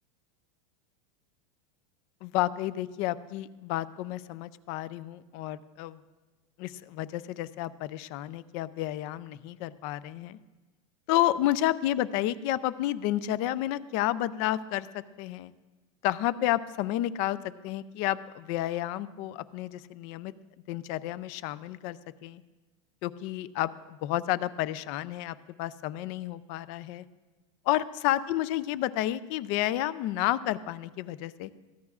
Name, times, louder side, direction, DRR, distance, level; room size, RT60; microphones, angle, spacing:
voice 1, 2.2-6.0 6.6-10.4 11.1-15.5 16.0-17.4 17.6-20.3 20.7-22.4 23.0-27.0 27.7-31.5, left 14 dB, 35° left, 16 dB, 0.4 m, -31 dB
23.0 x 16.5 x 2.4 m, 1.2 s
supercardioid pair, 175°, 17 cm